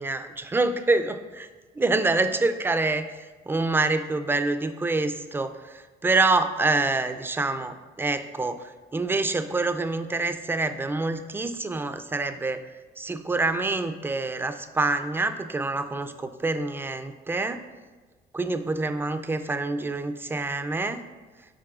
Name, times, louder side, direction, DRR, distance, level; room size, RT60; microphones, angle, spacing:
voice 1, 0.0-1.5 1.8-12.6 13.0-17.6 18.3-21.0, right 3 dB, 15° right, 9 dB, 0.3 m, -26 dB
7.5 x 5.5 x 2.4 m, 1.3 s
cardioid pair, 110°, 17 cm